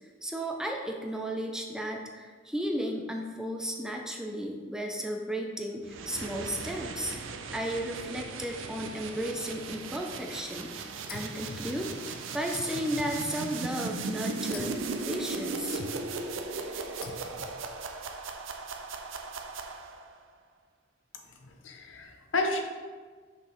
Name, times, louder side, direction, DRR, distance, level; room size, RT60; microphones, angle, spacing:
voice 1, 0.2-7.2 7.5-10.7 11.1-14.7 15.1-15.8 17.0-17.2, equal, 5° right, 1 dB, 0.4 m, -34 dB
sound 1, 5.8-20.1, right 4 dB, 75° right, 0.5 m, -37 dB
sound 2, 11.1-12.1 12.5-13.8 14.5-15.0 15.7-16.3 17.0-17.6, left 3 dB, 50° left, 0.4 m, -44 dB
voice 2, 21.4-22.6, left 2 dB, 75° left, 3 dB, 0.7 m, -31 dB
6.0 x 5.2 x 3.1 m, 1.5 s
head